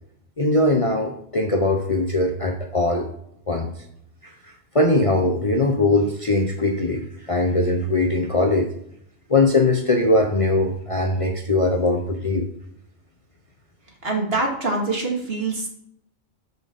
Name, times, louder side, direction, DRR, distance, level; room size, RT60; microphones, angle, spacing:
voice 1, 0.4-3.1 3.5-3.7 4.7-8.7 9.3-12.5, left 2 dB, 30° left, 3 dB, 0.8 m, -20 dB
voice 2, 14.0-15.7, right 3 dB, 55° right, 1 dB, 2.1 m, -24 dB
6.2 x 5.3 x 6.7 m, 0.72 s
omnidirectional pair, 1.2 m